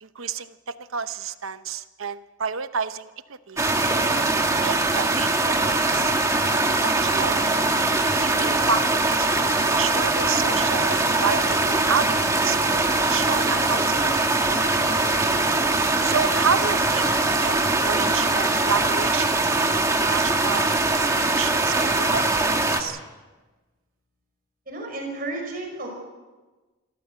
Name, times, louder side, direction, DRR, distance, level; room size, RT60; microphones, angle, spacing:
voice 1, 0.0-3.6 4.1-4.3 4.6-6.1 6.8-7.5 8.2-15.0 16.0-17.1 17.4-23.0, right 6 dB, 80° right, 12 dB, 0.9 m, -30 dB
sound 1, 3.6-22.8, right 2 dB, 15° right, 1.6 m, -22 dB
voice 2, 24.7-25.9, right 2 dB, 45° right, 2 dB, 5.4 m, -32 dB
27.0 x 13.5 x 8.1 m, 1.2 s
head